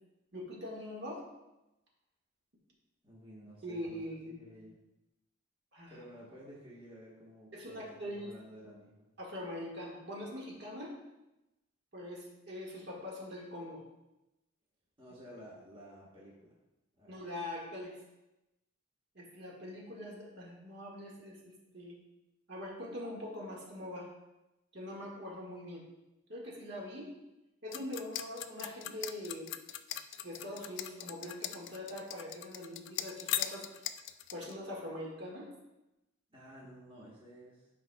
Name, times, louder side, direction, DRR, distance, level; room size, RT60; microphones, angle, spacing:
voice 1, 0.3-1.2 3.6-4.4 5.7-5.9 7.5-8.3 9.2-11.0 11.9-13.8 17.1-18.0 19.2-22.0 22.5-24.1 24.7-25.8 26.3-27.1 27.6-29.5 30.2-33.7 34.3-35.5, left 1 dB, 50° right, -4 dB, 1.7 m, -43 dB
voice 2, 3.0-4.8 5.9-9.1 15.0-16.6 17.0-17.2 36.3-37.7, equal, 25° right, -6 dB, 1.4 m, -53 dB
sound 1, 27.7-34.5, left 12 dB, 55° left, 0.3 m, -39 dB
11.5 x 5.7 x 2.3 m, 0.96 s
head